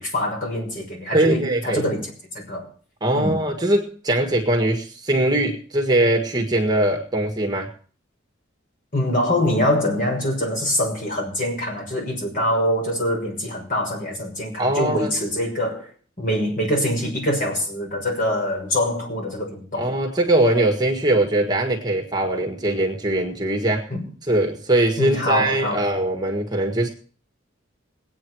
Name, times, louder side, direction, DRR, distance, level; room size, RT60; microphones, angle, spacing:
voice 1, 0.0-2.1 2.3-2.7 3.1-3.3 8.9-15.9 16.2-19.9 23.9-24.0 25.0-25.8, left 1 dB, 45° left, -1 dB, 6.0 m, -24 dB
voice 2, 1.1-1.8 3.0-7.7 14.6-15.1 19.7-23.9 24.3-26.9, right 1 dB, 20° right, 2 dB, 1.7 m, -21 dB
21.5 x 9.0 x 4.7 m, 0.43 s
head